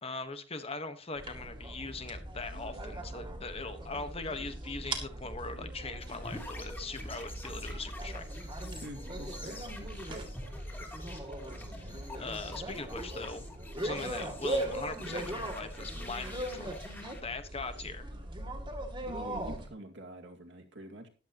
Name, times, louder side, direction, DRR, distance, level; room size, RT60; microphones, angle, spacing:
voice 1, 0.0-8.3 11.8-11.9 12.2-13.5 13.8-16.8 17.2-18.1, left 3 dB, 30° left, 9 dB, 1.3 m, -40 dB
sound 1, 1.2-19.7, right 1 dB, 25° right, 2.4 m, -40 dB
sound 2, 6.0-17.2, left 1 dB, 10° left, 2.9 m, -48 dB
voice 2, 8.8-10.3 19.0-21.1, right 1 dB, 65° right, 3 dB, 2.3 m, -46 dB
14.0 x 11.5 x 3.0 m, 0.36 s
head